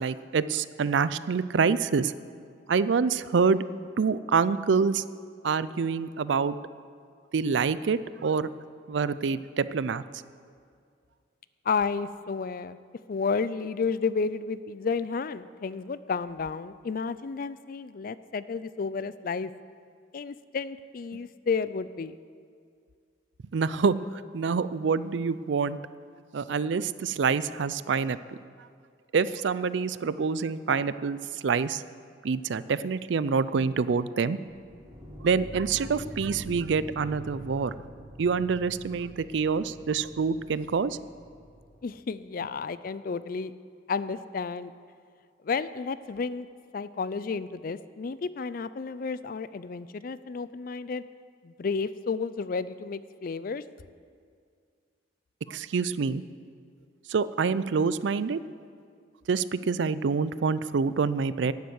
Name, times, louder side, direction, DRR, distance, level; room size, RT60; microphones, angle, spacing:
voice 1, 0.0-2.1 2.7-3.6 4.0-5.0 5.4-6.6 7.3-8.5 8.9-10.0 23.5-25.8 26.3-28.2 29.1-31.8 32.2-34.4 35.2-37.7 38.2-41.0 55.5-56.2 57.1-58.4 59.3-61.5, right 5 dB, 65° right, 16 dB, 0.4 m, -26 dB
voice 2, 11.6-12.8 13.1-19.5 20.1-22.2 41.8-43.5 43.9-44.7 45.4-46.5 46.7-51.0 51.4-53.6, left 5 dB, 45° left, 15 dB, 0.4 m, -31 dB
sound 1, 34.5-41.8, equal, 20° right, 4.1 m, -44 dB
11.5 x 9.4 x 8.0 m, 2.2 s
head